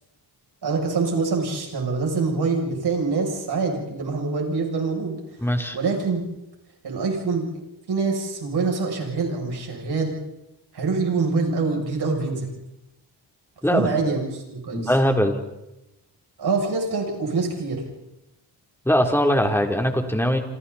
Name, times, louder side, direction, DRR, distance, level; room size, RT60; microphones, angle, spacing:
voice 1, 0.6-5.4 5.7-6.2 6.8-7.5 7.9-10.1 10.7-12.5 13.7-14.9 16.4-17.8, right 4 dB, 70° right, 0 dB, 7.6 m, -25 dB
voice 2, 5.4-5.8 13.6-13.9 14.7-15.4 18.9-20.4, equal, 5° left, 4 dB, 3.5 m, -21 dB
29.5 x 27.0 x 4.2 m, 0.94 s
cardioid pair, 85°, 41 cm